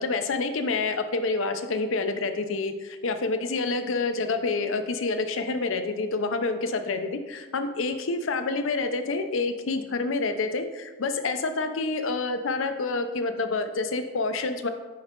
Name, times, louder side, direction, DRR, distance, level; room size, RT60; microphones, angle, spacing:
voice 1, 0.0-14.7, left 3 dB, 80° left, 7 dB, 0.6 m, -28 dB
9.5 x 3.7 x 3.7 m, 1.3 s
head